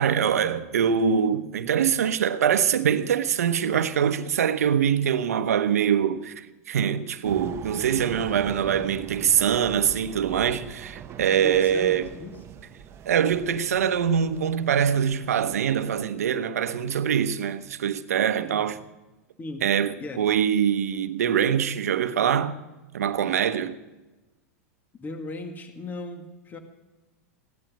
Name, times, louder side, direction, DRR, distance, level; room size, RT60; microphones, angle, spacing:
voice 1, 0.0-12.1 13.1-18.8 19.6-22.6 22.9-23.8, right 8 dB, 80° right, 1.0 m, -24 dB
sound 1, 7.2-16.1, right 8 dB, 35° right, 1.1 m, -42 dB
voice 2, 11.4-12.4 18.4-18.7 19.4-19.7 20.0-20.2 25.0-26.6, left 2 dB, 20° left, 2.0 m, -37 dB
16.0 x 12.0 x 6.3 m
hypercardioid pair, 105°, 8 cm